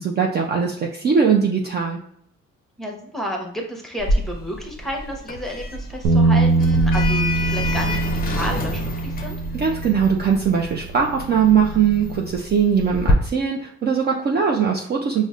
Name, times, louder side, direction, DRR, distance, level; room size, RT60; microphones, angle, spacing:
voice 1, 0.0-2.0 9.5-15.3, right 6 dB, 35° right, 1 dB, 0.4 m, -20 dB
voice 2, 2.8-9.4, equal, ahead, 0 dB, 0.8 m, -31 dB
Sliding door, 4.0-13.1, left 1 dB, 30° left, 0.5 m, -28 dB
Bass guitar, 6.0-12.3, right 3 dB, 85° right, 0.6 m, -23 dB
5.1 x 2.1 x 2.4 m, 0.67 s
cardioid pair, 90°, 30 cm